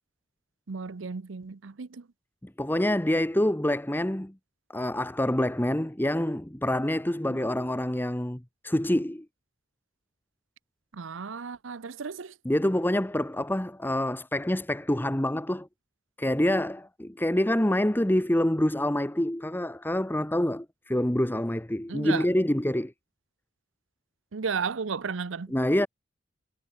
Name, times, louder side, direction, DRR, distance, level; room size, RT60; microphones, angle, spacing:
voice 1, 0.7-2.1 7.3-7.4 10.9-12.3 21.9-22.2 24.3-25.5, right 5 dB, 90° right, 0.7 m, -34 dB
voice 2, 2.4-4.4 4.7-9.3 12.4-15.7 16.2-22.9 25.5-25.9, left 1 dB, 10° left, 1.1 m, -26 dB
head